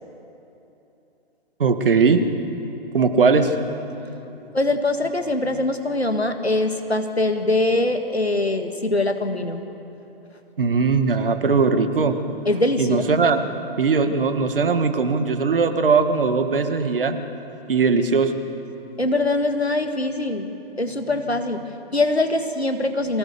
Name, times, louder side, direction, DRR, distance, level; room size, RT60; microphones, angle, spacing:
voice 1, 1.6-2.2 2.9-3.5 10.6-12.2 12.8-13.4 13.8-17.2 17.7-18.3, right 4 dB, 60° right, 8 dB, 1.8 m, -19 dB
voice 2, 3.9-9.6 12.4-13.1 19.0-20.5 20.8-23.2, left 2 dB, 90° left, 6 dB, 1.9 m, -23 dB
24.0 x 17.5 x 6.9 m, 3.0 s
figure-of-eight pair, 125°, 31 cm